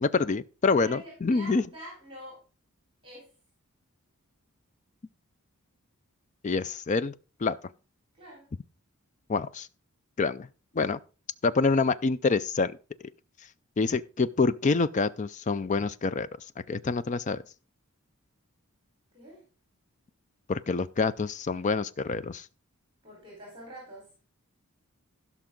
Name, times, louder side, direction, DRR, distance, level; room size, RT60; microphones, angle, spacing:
voice 1, 0.0-1.6 6.4-7.1 7.4-7.6 9.3-9.7 10.2-10.5 10.7-11.0 11.4-12.8 13.8-17.4 20.5-22.5, left 4 dB, 35° left, 0.4 m, -26 dB
voice 2, 0.6-2.4 3.0-3.3 8.1-8.5 19.1-19.4 23.0-24.1, right 1 dB, 25° right, 4.4 m, -46 dB
16.0 x 6.0 x 3.8 m
head